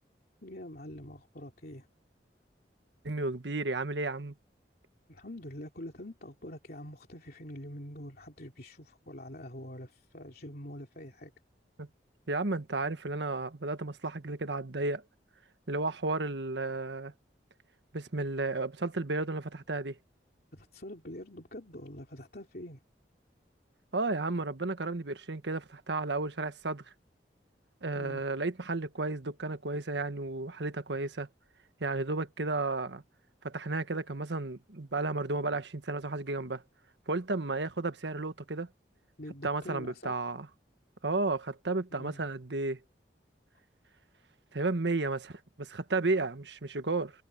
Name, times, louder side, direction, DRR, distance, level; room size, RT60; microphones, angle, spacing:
voice 1, 0.4-1.9 5.1-11.3 20.5-22.8 27.9-28.3 39.2-40.2 41.9-42.2, left 1 dB, 60° left, 3.0 m, -45 dB
voice 2, 3.0-4.3 11.8-11.9 12.3-15.0 15.7-17.1 17.9-19.9 23.9-26.8 27.8-31.3 31.8-33.0 33.4-36.6 37.1-38.7 39.4-40.5 41.0-42.8 44.5-47.1, right 3 dB, 90° right, 1.4 m, -33 dB
head